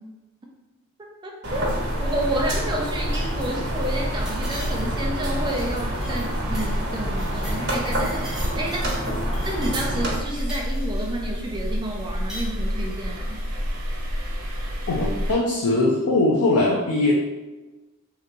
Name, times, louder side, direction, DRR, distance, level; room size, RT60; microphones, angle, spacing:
voice 1, 1.2-1.6 2.0-13.4, right 1 dB, 20° right, -1 dB, 0.3 m, -30 dB
sound 1, 1.4-10.2, right 1 dB, 50° right, 1.0 m, -29 dB
sound 2, 1.5-15.3, equal, 75° right, 0.7 m, -29 dB
sound 3, 4.2-5.0 5.3-5.6 5.9-6.2 6.5-6.7 7.0-9.0 9.3-11.1 12.0-12.5, right 1 dB, ahead, 0.7 m, -41 dB
voice 2, 14.9-17.1, left 2 dB, 90° left, -2 dB, 0.5 m, -21 dB
2.9 x 2.2 x 3.7 m, 1.1 s
head